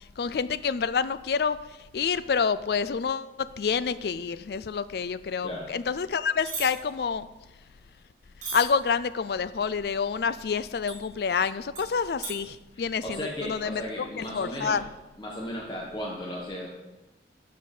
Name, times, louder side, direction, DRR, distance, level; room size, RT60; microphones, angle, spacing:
voice 1, 0.2-1.6 1.9-7.3 8.5-13.8 14.2-14.8, left 6 dB, 60° left, 15 dB, 0.4 m, -28 dB
sound 1, 6.4-6.7 8.4-8.7 10.9-11.0 11.8-11.9 12.2-12.4, right 4 dB, 45° right, 2.6 m, -34 dB
voice 2, 12.7-14.8 15.2-16.7, equal, 25° left, -4 dB, 1.2 m, -35 dB
12.5 x 4.7 x 5.4 m, 1.1 s
head